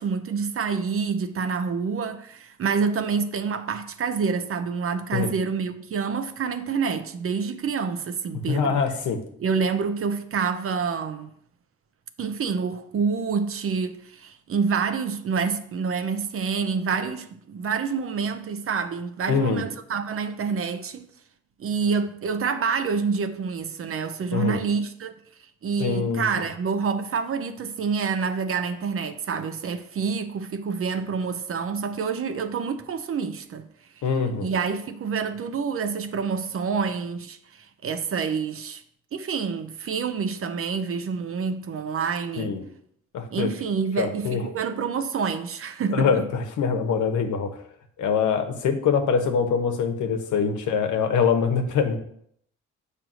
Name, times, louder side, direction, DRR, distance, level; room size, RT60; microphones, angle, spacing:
voice 1, 0.0-8.8 9.4-11.3 12.2-21.1 21.6-25.2 25.6-33.7 34.4-38.8 39.1-42.5 43.3-46.3, right 5 dB, 45° right, 0.7 m, -27 dB
voice 2, 8.5-9.2 19.3-19.6 24.3-24.6 25.8-26.2 34.0-34.5 42.4-42.6 43.1-43.5 44.0-44.4 45.9-47.6 48.0-52.0, left 6 dB, 75° left, 1.1 m, -24 dB
7.7 x 3.3 x 6.2 m
cardioid pair, 90°, 30 cm